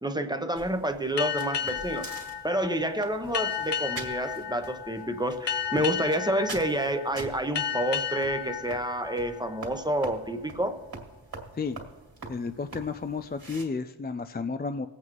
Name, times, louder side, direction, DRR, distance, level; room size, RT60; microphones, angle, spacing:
voice 1, 0.0-2.1 2.4-10.8, right 1 dB, 10° right, 7 dB, 1.0 m, -29 dB
sound 1, 0.5-13.6, right 3 dB, 50° right, 2.5 m, -45 dB
sound 2, 1.2-10.3, left 8 dB, 60° left, 0.7 m, -34 dB
voice 2, 12.3-14.9, left 4 dB, 20° left, 9 dB, 0.4 m, -32 dB
19.5 x 8.4 x 3.1 m, 1.2 s
cardioid pair, 55°, 47 cm